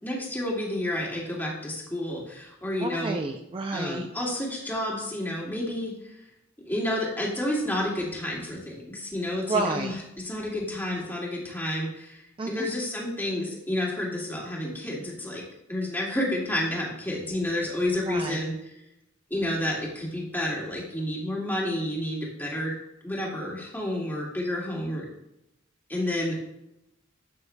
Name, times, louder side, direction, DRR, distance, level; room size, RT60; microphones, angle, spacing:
voice 1, 0.0-3.2 3.7-6.2 6.6-10.0 10.2-15.4 15.7-18.7 19.3-22.8 23.0-25.1 25.9-26.4, left 1 dB, 10° left, -4 dB, 2.2 m, -30 dB
voice 2, 2.8-4.1 9.5-9.9 12.4-12.7 18.1-18.4, right 3 dB, 25° right, 5 dB, 0.4 m, -30 dB
12.5 x 8.1 x 2.3 m, 0.85 s
head